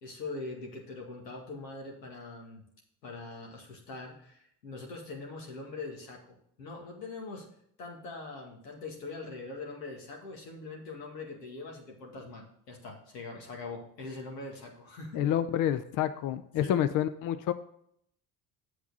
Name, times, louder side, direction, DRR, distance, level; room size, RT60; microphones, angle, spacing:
voice 1, 0.0-2.6 3.0-7.5 7.8-15.2 16.6-16.8, left 3 dB, 85° left, 0 dB, 2.1 m, -42 dB
voice 2, 15.2-17.5, left 10 dB, 40° left, 12 dB, 0.6 m, -28 dB
8.2 x 7.6 x 4.1 m, 0.70 s
hypercardioid pair, 60°, 48 cm